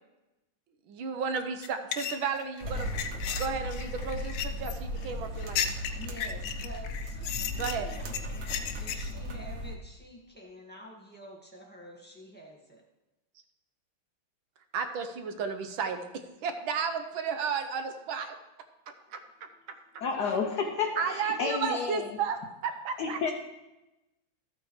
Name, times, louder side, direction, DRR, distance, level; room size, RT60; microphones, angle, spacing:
voice 1, 0.9-5.6 7.5-7.9 14.7-18.4 18.9-19.5 19.9-20.4 21.0-23.2, right 6 dB, 70° right, 1.6 m, -33 dB
sound 1, 1.6-9.1, left 9 dB, 80° left, 1.5 m, -35 dB
sound 2, 2.6-9.8, left 1 dB, 50° right, 0.9 m, -36 dB
voice 2, 5.8-12.8, right 1 dB, 5° left, 1.5 m, -48 dB
voice 3, 20.0-21.9 23.0-23.3, left 5 dB, 65° left, 1.1 m, -30 dB
13.0 x 8.3 x 3.2 m
omnidirectional pair, 2.3 m